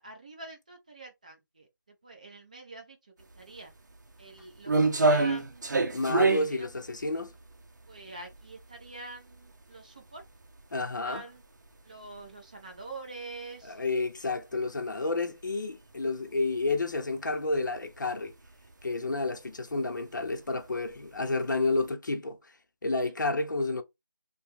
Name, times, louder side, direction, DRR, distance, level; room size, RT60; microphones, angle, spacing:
voice 1, 0.0-1.7 2.0-3.0 3.4-3.7 4.2-4.7 5.0-5.9 6.5-6.7 7.9-10.2 11.0-11.4 11.8-13.8 23.0-23.1, right 2 dB, 20° right, 0.5 m, -45 dB
sound 1, 3.3-3.4 3.9-8.9 9.3-9.4 10.2-10.3 10.6-10.7 11.7-11.8 12.1-12.2 12.7-12.9 13.2-13.3 15.4-15.5 16.8-17.1 17.5-17.9 18.3-18.5 18.8-18.9 20.0-20.2 20.8-21.5 21.8-21.9, right 3 dB, 60° right, 0.7 m, -26 dB
voice 2, 5.9-7.3 10.7-11.3 13.6-18.3 18.8-22.4 22.8-23.8, left 3 dB, 65° left, 0.7 m, -30 dB
2.8 x 2.2 x 3.3 m
figure-of-eight pair, 170°, 11 cm